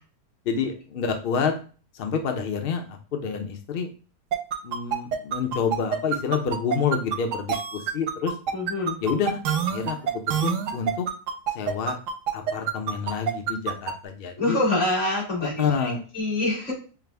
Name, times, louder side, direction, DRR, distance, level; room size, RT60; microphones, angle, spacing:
voice 1, 0.4-1.5 1.9-3.9 4.6-8.3 9.0-9.4 9.7-11.1 11.5-12.0 12.3-14.6 15.4-16.0, left 6 dB, 75° left, 5 dB, 0.5 m, -28 dB
sound 1, 4.3-13.9, right 8 dB, 65° right, 0.8 m, -26 dB
voice 2, 8.5-9.0 14.4-16.7, left 2 dB, 45° left, -4 dB, 2.3 m, -26 dB
5.8 x 2.0 x 3.3 m, 0.37 s
omnidirectional pair, 1.7 m